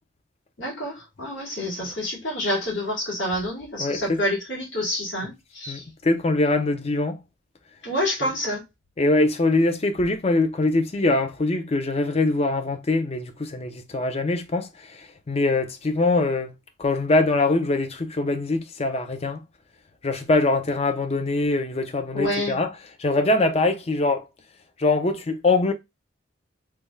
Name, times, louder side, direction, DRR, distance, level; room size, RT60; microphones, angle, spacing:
voice 1, 0.6-5.8 7.8-8.6 22.1-22.6, left 1 dB, 70° left, 2.1 m, -28 dB
voice 2, 3.8-4.2 5.7-7.2 8.2-8.3 9.0-16.5 16.8-19.4 20.0-22.7 23.0-24.2 24.8-25.7, left 2 dB, 30° left, 0.5 m, -23 dB
3.3 x 2.3 x 3.1 m
head